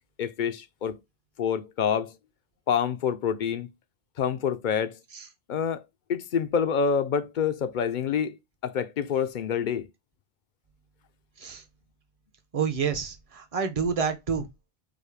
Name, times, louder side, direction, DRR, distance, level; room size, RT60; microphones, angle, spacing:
voice 1, 0.2-1.0 1.4-2.2 2.7-3.7 4.2-5.0 5.5-5.8 6.1-9.9, left 7 dB, 60° left, 0.6 m, -27 dB
voice 2, 12.5-14.5, right 6 dB, 40° right, 0.8 m, -28 dB
5.1 x 2.2 x 4.8 m
omnidirectional pair, 1.0 m